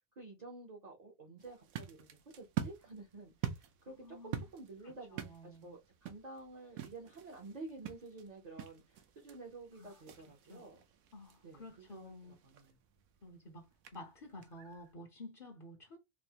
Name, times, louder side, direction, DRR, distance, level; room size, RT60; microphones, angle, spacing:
voice 1, 0.2-2.1 2.3-3.5 3.9-10.8 11.4-12.1 12.4-12.8, right 3 dB, 45° right, 0.6 m, -51 dB
sound 1, 1.4-14.9, right 10 dB, 75° right, 1.0 m, -47 dB
voice 2, 3.9-4.5 4.8-5.8 9.8-10.0 10.5-10.6 11.1-12.4 13.2-13.7 13.9-16.0, left 1 dB, 45° left, 0.6 m, -51 dB
4.1 x 2.0 x 2.8 m
omnidirectional pair, 1.6 m